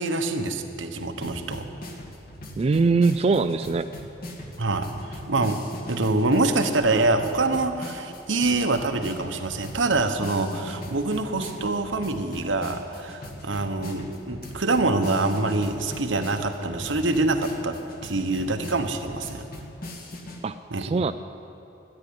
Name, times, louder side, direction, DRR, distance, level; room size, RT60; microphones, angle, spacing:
voice 1, 0.0-1.7 4.6-19.4 20.7-20.9, right 2 dB, 85° right, 6 dB, 1.1 m, -25 dB
sound 1, 1.2-20.4, left 1 dB, 50° left, 1.8 m, -40 dB
voice 2, 2.6-3.9 20.4-21.1, right 4 dB, 35° right, 9 dB, 0.3 m, -22 dB
13.5 x 9.8 x 9.9 m, 2.8 s
head